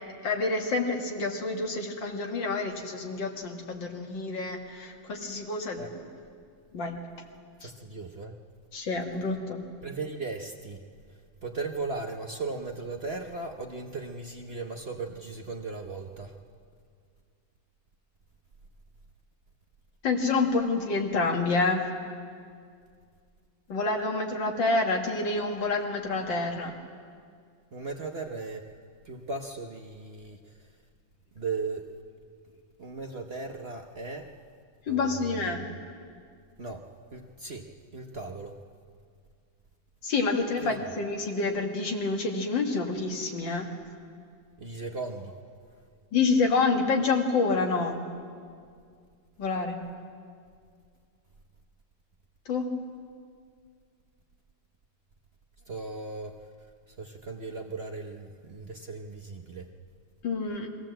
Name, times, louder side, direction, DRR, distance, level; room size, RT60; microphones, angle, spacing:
voice 1, 0.2-5.8 6.7-6.9 8.7-9.6 20.0-21.8 23.7-26.7 34.9-35.7 40.0-43.7 46.1-48.0 49.4-49.8 52.5-52.8 60.2-60.7, left 3 dB, 70° left, 2 dB, 2.4 m, -28 dB
voice 2, 7.6-8.4 9.8-10.8 11.1-16.4 27.7-28.7 29.0-30.8 31.3-31.9 32.5-34.4 34.9-35.8 36.6-38.6 40.6-40.8 44.6-45.3 45.7-45.8 55.7-56.5 56.9-59.7, right 3 dB, 50° right, 3 dB, 0.8 m, -37 dB
22.5 x 16.0 x 7.7 m, 2.2 s
omnidirectional pair, 2.1 m